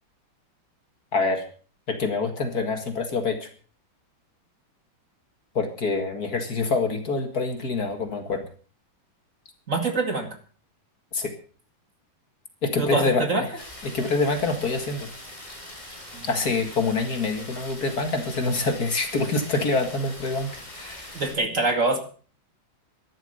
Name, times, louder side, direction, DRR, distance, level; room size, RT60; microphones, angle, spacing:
voice 1, 1.1-1.4 1.9-3.5 5.5-8.4 11.1-11.3 12.6-15.1 16.3-21.2, left 3 dB, 50° left, 6 dB, 2.4 m, -26 dB
voice 2, 9.7-10.4 12.8-13.4 16.1-16.2 21.1-22.0, right 3 dB, 40° right, 5 dB, 2.5 m, -24 dB
sound 1, 13.6-21.3, left 1 dB, 20° left, 3.9 m, -42 dB
13.0 x 11.5 x 6.6 m, 0.41 s
omnidirectional pair, 2.3 m